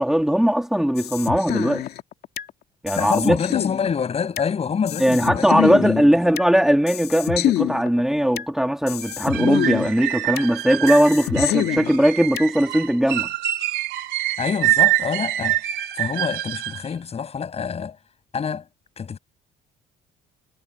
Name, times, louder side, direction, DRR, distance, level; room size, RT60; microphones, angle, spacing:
voice 1, 0.0-1.9 2.8-3.4 5.0-13.3, equal, ahead, 2.8 m, -19 dB
sound 1, 1.0-2.5 2.9-4.5 4.9-6.5 6.9-8.5 8.9-10.5 10.9-12.5, left 13 dB, 70° left, 2.4 m, -27 dB
voice 2, 3.0-6.1 14.4-15.6 16.0-18.0 18.3-18.6 19.0-19.2, left 6 dB, 35° left, 7.4 m, -26 dB
sound 2, 9.0-16.9, right 15 dB, 85° right, 4.5 m, -25 dB
cardioid pair, 110°, 17 cm